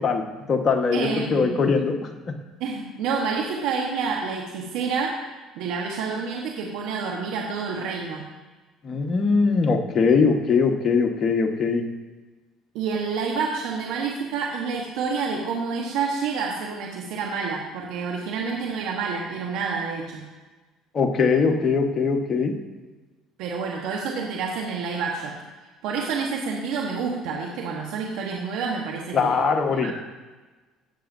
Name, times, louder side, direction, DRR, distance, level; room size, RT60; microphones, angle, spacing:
voice 1, 0.0-2.1 8.8-11.8 20.9-22.5 29.1-29.9, left 5 dB, 40° left, 3 dB, 1.3 m, -21 dB
voice 2, 0.9-1.6 2.6-5.2 5.6-8.2 12.7-20.2 23.4-25.3 25.8-29.4 29.7-29.9, right 5 dB, 75° right, -1 dB, 1.2 m, -28 dB
16.5 x 7.2 x 2.7 m, 1.2 s
supercardioid pair, 80°, 0 cm